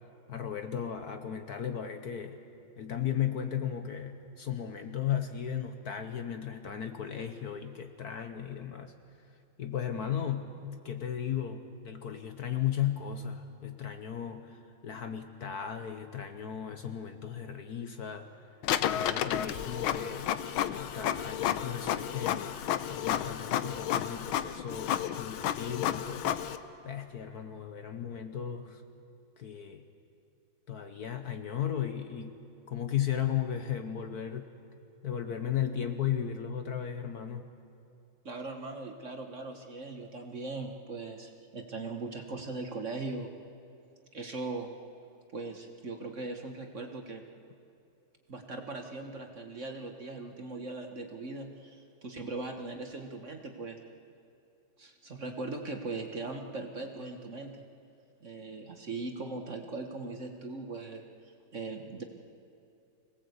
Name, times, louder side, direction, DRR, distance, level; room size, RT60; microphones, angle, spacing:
voice 1, 0.3-2.4 2.8-8.9 9.6-18.3 18.8-20.3 20.7-22.6 22.9-26.5 26.8-28.8 29.4-29.8 30.7-32.3 32.7-34.5 35.0-37.5, left 9 dB, 55° left, 7 dB, 1.3 m, -35 dB
Printer, 18.6-26.6, left 10 dB, 90° left, 1.6 m, -32 dB
voice 2, 38.2-43.3 44.1-44.7 45.3-47.2 48.3-53.8 54.8-57.5 58.2-61.0 61.5-62.0, right 3 dB, 40° right, 4 dB, 1.5 m, -39 dB
25.0 x 18.0 x 8.1 m, 2.6 s
omnidirectional pair, 2.2 m